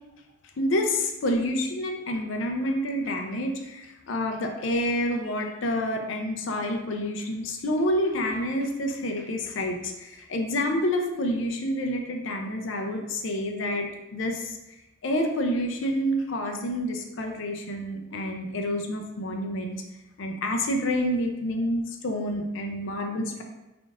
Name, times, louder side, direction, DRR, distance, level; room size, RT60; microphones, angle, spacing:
voice 1, 0.6-13.9 14.1-14.6 15.0-19.8 20.2-23.4, left 1 dB, 60° left, 3 dB, 0.5 m, -28 dB
3.7 x 3.5 x 2.4 m, 1.0 s
head